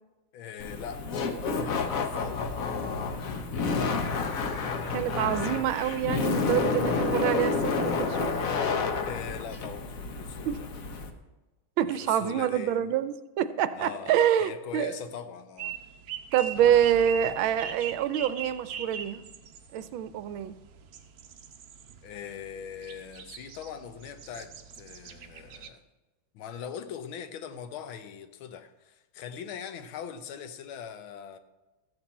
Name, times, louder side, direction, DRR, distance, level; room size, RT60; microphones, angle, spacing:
voice 1, 0.3-1.1 1.4-2.6 9.0-10.7 11.8-12.9 13.7-15.8 22.0-25.8 26.3-31.4, left 8 dB, 80° left, 1.6 m, -41 dB
Laughter, 0.6-11.1, left 4 dB, 50° left, 1.1 m, -30 dB
voice 2, 4.9-8.3 10.5-10.6 11.8-14.9 16.3-19.2 19.7-20.6, right 10 dB, 80° right, 1.4 m, -26 dB
sound 1, 15.6-25.7, right 7 dB, 60° right, 1.0 m, -42 dB
sound 2, 16.4-20.0, equal, 25° left, 0.9 m, -51 dB
13.5 x 8.0 x 4.2 m
omnidirectional pair, 2.2 m